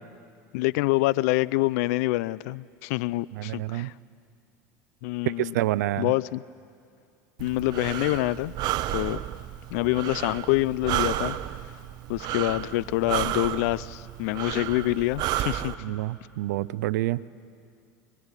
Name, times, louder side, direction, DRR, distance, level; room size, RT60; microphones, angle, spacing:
voice 1, 0.5-3.9 5.0-5.6 6.0-6.4 7.4-8.5 8.9-9.2 9.7-11.4 12.1-15.8, left 19 dB, 70° left, 20 dB, 0.6 m, -26 dB
voice 2, 3.4-3.9 5.4-6.1 15.8-17.2, right 16 dB, 80° right, 18 dB, 0.6 m, -28 dB
Breathing, 7.4-15.7, right 14 dB, 50° right, 1.0 m, -32 dB
25.0 x 22.5 x 9.9 m, 2.4 s
hypercardioid pair, 100°, 9 cm